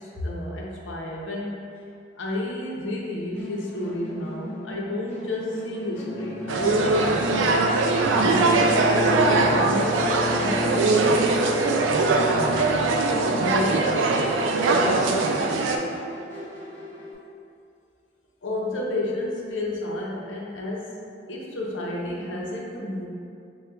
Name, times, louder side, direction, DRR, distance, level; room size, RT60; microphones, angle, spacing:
voice 1, 0.0-1.6 2.2-7.6 8.2-11.3 13.1-14.3 18.4-21.0 21.3-23.1, left 1 dB, 85° left, -3 dB, 0.7 m, -31 dB
Musical instrument, 3.3-17.1, equal, 15° left, 0.9 m, -39 dB
Bowed string instrument, 6.0-14.4, left 1 dB, 15° right, 0.4 m, -33 dB
sound 1, 6.5-15.8, right 3 dB, 90° right, 0.3 m, -21 dB
6.5 x 2.3 x 2.3 m, 2.5 s
head